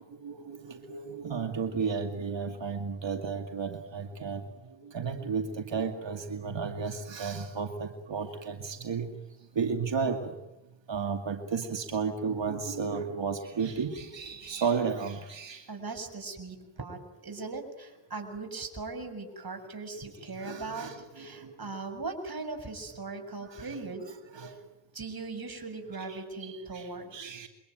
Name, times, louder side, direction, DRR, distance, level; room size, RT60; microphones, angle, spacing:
voice 1, 0.2-0.6 0.9-4.4 4.9-9.1 9.6-10.3 10.9-15.6 20.4-21.3 23.6-24.5 26.1-26.2 26.4-26.8 27.1-27.5, right 5 dB, 70° right, 6 dB, 2.5 m, -33 dB
voice 2, 15.7-24.0 24.9-27.4, right 3 dB, 50° right, 5 dB, 7.0 m, -39 dB
27.0 x 24.0 x 9.2 m, 0.91 s
cardioid pair, 40°, 46 cm